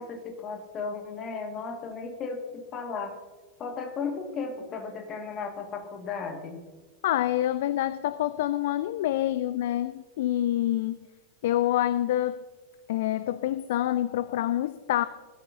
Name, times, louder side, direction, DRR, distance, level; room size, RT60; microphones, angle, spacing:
voice 1, 0.0-3.1 3.6-6.6, left 5 dB, 30° left, 4 dB, 1.9 m, -35 dB
voice 2, 7.0-11.0 11.4-12.4 12.9-15.1, left 13 dB, 55° left, 16 dB, 0.3 m, -27 dB
20.0 x 13.0 x 2.8 m, 1.3 s
figure-of-eight pair, 90°, 0 cm